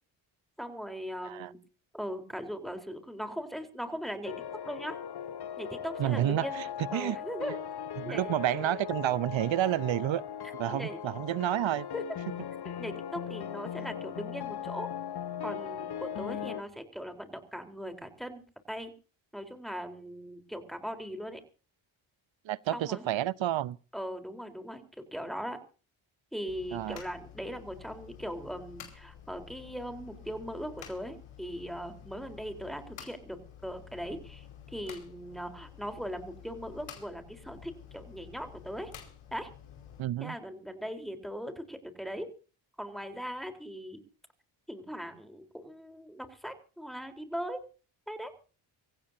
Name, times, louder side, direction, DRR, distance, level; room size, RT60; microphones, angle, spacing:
voice 1, 0.6-1.6 1.9-4.3 4.7-5.0 5.6-6.6 6.9-7.6 8.0-8.3 10.7-11.0 11.9-12.0 12.8-14.9 15.4-18.4 18.7-18.9 19.3-21.4 22.7-23.1 23.9-24.8 25.1-25.6 26.3-34.5 34.7-38.9 39.3-39.5 40.2-42.3 42.8-44.0 44.7-47.7 48.1-48.3, equal, ahead, 4.0 m, -39 dB
sound 1, 4.2-16.6, left 9 dB, 50° left, 1.1 m, -39 dB
voice 2, 6.0-7.2 8.0-10.2 10.6-11.9 22.4-23.8 26.7-27.0 40.0-40.4, right 13 dB, 65° right, 0.9 m, -30 dB
sound 2, 26.5-40.0, left 9 dB, 80° left, 5.0 m, -50 dB
26.0 x 15.5 x 2.8 m
cardioid pair, 60°, 49 cm